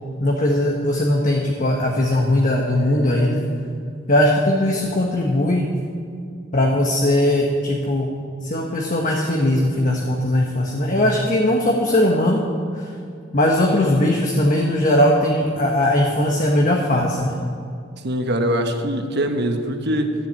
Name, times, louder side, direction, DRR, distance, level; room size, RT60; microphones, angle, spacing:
voice 1, 0.2-3.4 4.1-5.7 6.5-8.1 8.4-12.4 12.7-12.9 13.3-17.3, left 1 dB, 45° left, 0 dB, 1.3 m, -19 dB
voice 2, 18.0-20.1, equal, 60° right, 5 dB, 1.2 m, -22 dB
13.5 x 7.6 x 8.7 m, 2.3 s
head